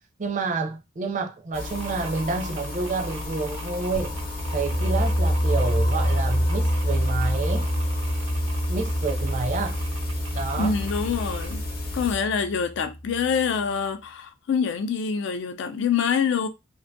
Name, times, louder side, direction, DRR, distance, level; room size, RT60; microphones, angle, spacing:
voice 1, 0.2-4.2 4.5-7.7 8.7-9.8 10.3-10.8, right 4 dB, 40° right, 0.4 m, -29 dB
sound 1, 1.5-12.2, left 3 dB, 45° left, 0.8 m, -35 dB
sound 2, 1.7-11.5, right 5 dB, 90° right, 0.5 m, -45 dB
sound 3, 4.0-13.5, equal, 20° left, 0.6 m, -26 dB
voice 2, 10.6-11.6 11.9-16.5, left 6 dB, 65° left, 0.4 m, -25 dB
2.5 x 2.2 x 2.5 m
head